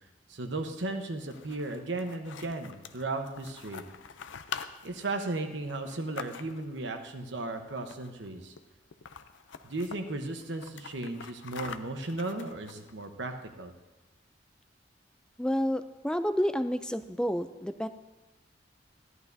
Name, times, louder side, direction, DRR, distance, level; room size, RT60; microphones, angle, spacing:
voice 1, 0.3-3.8 4.8-8.5 9.6-13.7, right 2 dB, 75° right, 6 dB, 1.0 m, -35 dB
sound 1, 1.1-6.8 7.8-8.3 8.6-8.7 8.9-10.0 10.4-13.1, left 7 dB, 85° left, 0.5 m, -44 dB
voice 2, 15.4-17.9, equal, 5° left, 11 dB, 0.3 m, -29 dB
14.0 x 11.0 x 2.7 m, 1.2 s
head